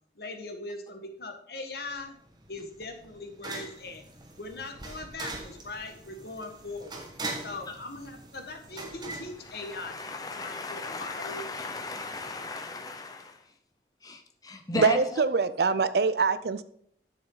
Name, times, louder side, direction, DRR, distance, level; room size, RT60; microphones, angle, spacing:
voice 1, 0.1-2.2 2.5-4.0 4.4-7.1 7.4-11.4, left 2 dB, 60° left, 4 dB, 1.4 m, -40 dB
sound 1, 1.9-10.2, right 2 dB, 25° right, 1.2 m, -42 dB
voice 2, 9.5-13.4 14.0-15.0, left 3 dB, 20° left, 6 dB, 0.8 m, -36 dB
voice 3, 14.7-16.6, right 4 dB, 60° right, 15 dB, 0.5 m, -24 dB
9.6 x 7.2 x 3.8 m, 0.67 s
head